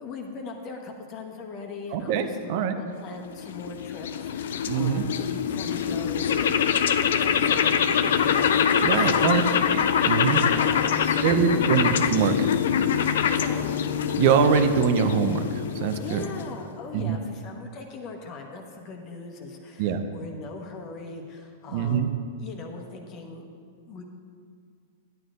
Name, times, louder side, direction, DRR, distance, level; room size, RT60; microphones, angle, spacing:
voice 1, 0.0-9.5 10.5-11.9 13.3-13.7 16.0-22.1 22.4-23.4 23.9-24.0, left 3 dB, 40° left, 2 dB, 1.1 m, -40 dB
voice 2, 1.9-2.8 4.7-5.0 8.8-9.4 9.7-10.4 11.2-12.5 14.2-16.2 16.9-17.2 19.8-20.0 21.7-22.1, right 7 dB, 55° right, 9 dB, 0.6 m, -23 dB
sound 1, 3.2-16.7, left 8 dB, 70° left, 0.3 m, -24 dB
11.0 x 9.2 x 2.5 m, 2.2 s
hypercardioid pair, 105°, 0 cm